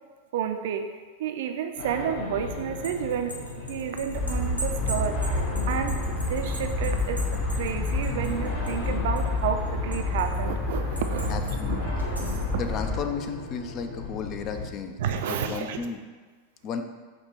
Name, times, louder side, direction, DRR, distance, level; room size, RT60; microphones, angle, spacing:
voice 1, 0.3-11.8 15.0-15.8, right 8 dB, 55° right, 6 dB, 0.3 m, -31 dB
sound 1, 1.8-14.7, left 3 dB, 55° left, 0.8 m, -37 dB
sound 2, 2.6-8.9 9.2-10.4 11.0-11.6 12.0-12.5, right 2 dB, 90° left, 0.6 m, -39 dB
sound 3, 4.1-13.0, left 2 dB, 15° left, 0.7 m, -29 dB
voice 2, 11.3-12.1 12.5-15.0 15.3-16.0 16.6-16.8, left 6 dB, 35° left, 7 dB, 0.3 m, -34 dB
5.2 x 2.1 x 4.2 m, 1.4 s
figure-of-eight pair, 90°, 0 cm